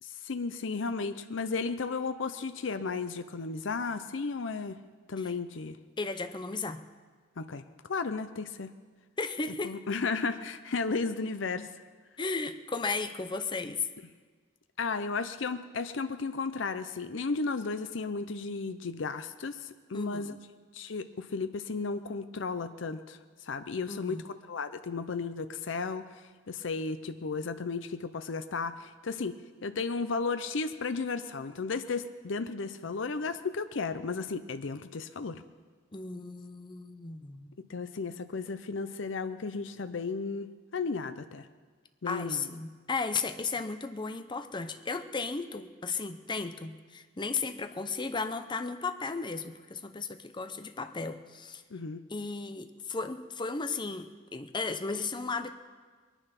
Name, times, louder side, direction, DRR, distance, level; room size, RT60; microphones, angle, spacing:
voice 1, 0.0-4.8 5.1-5.8 7.4-8.7 9.6-11.7 14.8-20.3 20.7-29.4 29.6-35.4 37.7-41.5 42.0-42.5 51.7-52.0, left 4 dB, 70° left, 10 dB, 0.6 m, -34 dB
voice 2, 6.0-6.8 9.2-9.8 12.2-13.9 19.9-20.4 23.9-24.2 35.9-37.6 42.1-51.6 52.1-55.5, left 4 dB, 25° left, 9 dB, 0.7 m, -35 dB
21.5 x 9.9 x 5.9 m, 1.5 s
head